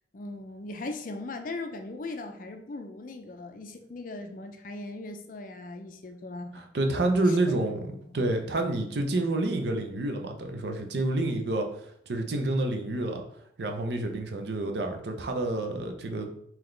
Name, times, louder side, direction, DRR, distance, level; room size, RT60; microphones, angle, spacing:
voice 1, 0.1-6.7 7.3-7.7 8.1-8.2, left 2 dB, 50° left, 6 dB, 0.4 m, -39 dB
voice 2, 6.5-7.8 8.1-13.2 13.6-16.3, right 2 dB, 70° right, 4 dB, 0.6 m, -28 dB
3.9 x 2.9 x 3.2 m, 0.69 s
head